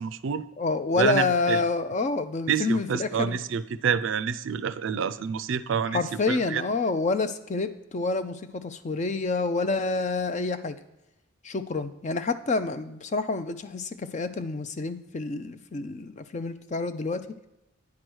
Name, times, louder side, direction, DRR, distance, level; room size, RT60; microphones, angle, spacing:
voice 1, 0.0-0.5 1.0-1.6 2.5-6.6, right 7 dB, 60° right, 14 dB, 0.4 m, -28 dB
voice 2, 0.6-3.4 5.9-10.8 11.4-17.3, left 3 dB, 35° left, 11 dB, 0.4 m, -28 dB
9.6 x 4.7 x 6.1 m, 0.95 s
head